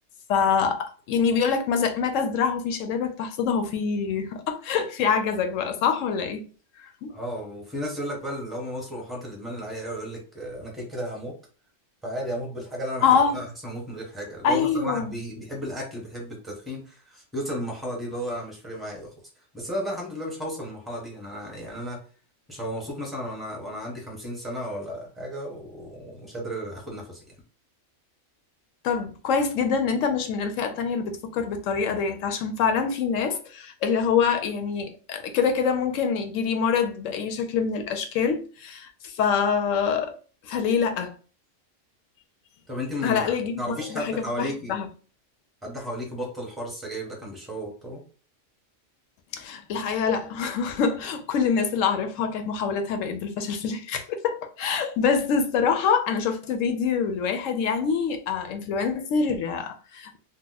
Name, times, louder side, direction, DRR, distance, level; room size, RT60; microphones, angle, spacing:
voice 1, 0.3-6.4 7.0-7.1 13.0-13.4 14.4-15.1 28.8-40.1 40.4-41.1 43.0-44.9 49.3-60.2, left 6 dB, 85° left, 1.0 m, -25 dB
voice 2, 7.1-11.3 12.0-19.1 19.5-22.0 22.5-27.2 42.7-43.2 43.6-44.7 45.6-48.0, equal, ahead, 0.8 m, -34 dB
2.9 x 2.0 x 3.9 m
omnidirectional pair, 1.3 m